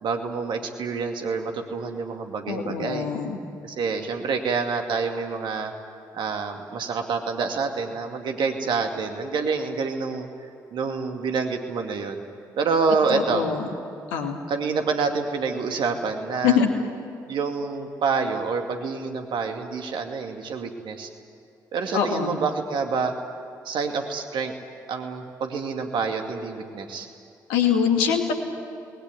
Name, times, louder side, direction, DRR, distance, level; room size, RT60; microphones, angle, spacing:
voice 1, 0.0-3.1 3.6-5.7 6.1-10.3 10.7-12.2 12.6-13.4 14.5-16.6 17.3-21.1 21.7-23.1 23.6-24.5 24.9-27.1, right 5 dB, 60° right, 4 dB, 2.4 m, -27 dB
voice 2, 2.5-3.4 13.1-13.7 14.1-14.4 16.4-16.7 21.9-22.4 27.5-28.3, left 7 dB, 75° left, 4 dB, 2.4 m, -23 dB
29.0 x 20.5 x 9.8 m, 2.5 s
figure-of-eight pair, 40°, 9 cm